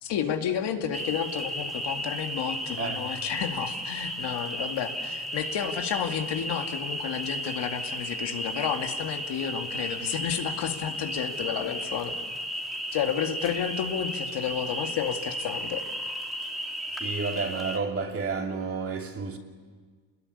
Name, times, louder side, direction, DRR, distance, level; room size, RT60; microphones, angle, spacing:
voice 1, 0.0-12.2 12.9-15.8, left 8 dB, 60° left, 2.4 m, -31 dB
sound 1, 0.9-17.8, equal, ahead, 2.4 m, -34 dB
voice 2, 2.8-3.1 17.0-19.4, right 5 dB, 30° right, 3.0 m, -31 dB
28.5 x 21.0 x 9.9 m
cardioid pair, 145°, 46 cm